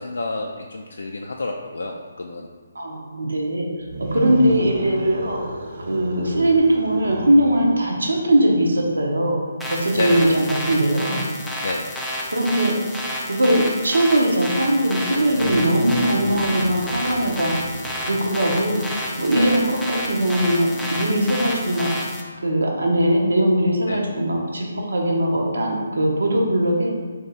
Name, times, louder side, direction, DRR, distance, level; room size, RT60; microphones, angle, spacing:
voice 1, 0.0-2.5 9.9-10.4 11.6-11.9 19.3-19.5 23.9-24.0, left 2 dB, 80° left, 0 dB, 0.3 m, -28 dB
voice 2, 2.7-3.7 4.1-5.4 5.9-9.4 9.7-11.2 12.3-12.7 13.3-17.6 18.1-18.8 19.2-21.9 22.4-26.9, right 1 dB, 85° right, -1 dB, 0.8 m, -20 dB
sound 1, 3.8-9.0 15.2-20.9, right 1 dB, 55° right, 0.5 m, -34 dB
sound 2, 9.6-22.2, left 1 dB, 5° left, 0.4 m, -30 dB
3.5 x 2.7 x 4.0 m, 1.5 s
figure-of-eight pair, 150°, 0 cm